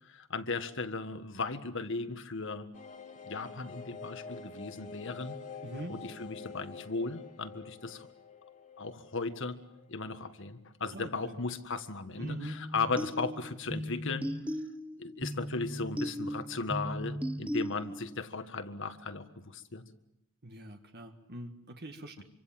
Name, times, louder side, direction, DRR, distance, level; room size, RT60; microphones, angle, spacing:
voice 1, 0.0-2.7 3.3-5.4 5.9-8.1 8.8-9.6 9.9-14.3 15.0-19.8 22.2-22.3, left 4 dB, 60° left, 9 dB, 1.7 m, -36 dB
sound 1, 2.7-10.2 10.5-10.6 10.8-10.9, left 5 dB, 35° left, 2.3 m, -47 dB
voice 2, 5.6-5.9 10.9-11.3 12.2-12.6 20.4-22.2, right 1 dB, 50° right, 5 dB, 1.8 m, -43 dB
sound 2, 12.2-18.2, equal, 5° right, 1.0 m, -37 dB
26.5 x 25.5 x 7.6 m, 0.79 s
head